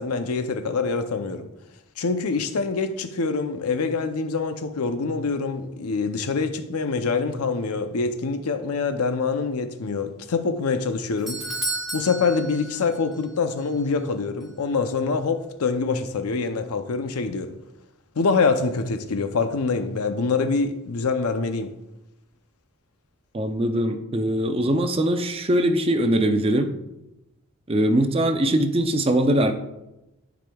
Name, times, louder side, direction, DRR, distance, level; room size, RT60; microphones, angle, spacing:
voice 1, 0.0-1.5 2.0-11.4 11.9-17.5 18.2-21.7, left 4 dB, 85° left, 0.6 m, -25 dB
Doorbell, 10.8-13.3 13.6-13.7 14.4-14.5, right 1 dB, ahead, 0.8 m, -32 dB
voice 2, 23.3-26.7 27.7-29.5, right 1 dB, 25° right, 0.5 m, -21 dB
12.5 x 4.9 x 2.3 m
head